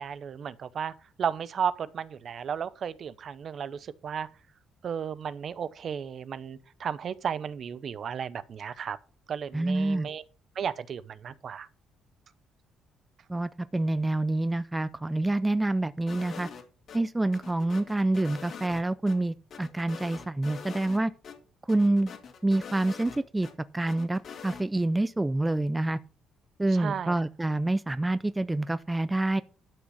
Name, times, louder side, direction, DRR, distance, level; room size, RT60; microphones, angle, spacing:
voice 1, 0.0-4.3 4.8-9.0 9.3-10.2 10.5-11.7 26.7-27.1, right 7 dB, 50° right, 0.7 m, -34 dB
voice 2, 9.5-10.1 13.3-16.5 16.9-21.1 21.7-22.1 22.4-23.5 23.7-26.0 26.6-29.4, right 2 dB, 10° right, 0.5 m, -27 dB
sound 1, 16.1-17.0 17.3-19.2 19.5-21.0 21.2-21.4 21.7-23.5 23.9-24.6, left 6 dB, 50° left, 2.2 m, -44 dB
12.0 x 6.1 x 5.6 m
cardioid pair, 120°, 0 cm